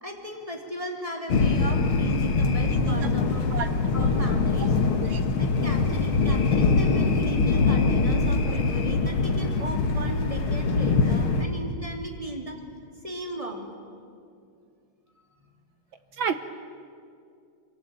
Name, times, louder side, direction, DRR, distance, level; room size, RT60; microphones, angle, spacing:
voice 1, 0.0-3.5 3.9-4.7 5.4-12.6 13.0-13.7, right 1 dB, 10° right, 1 dB, 3.0 m, -36 dB
sound 1, 1.3-11.4, left 4 dB, 50° left, 2.2 m, -23 dB
voice 2, 2.9-3.1 3.5-3.7 4.0-4.1 5.0-5.2 8.5-8.6 16.2-16.4, right 6 dB, 70° right, 9 dB, 1.2 m, -30 dB
25.0 x 24.0 x 9.3 m, 2.3 s
omnidirectional pair, 3.3 m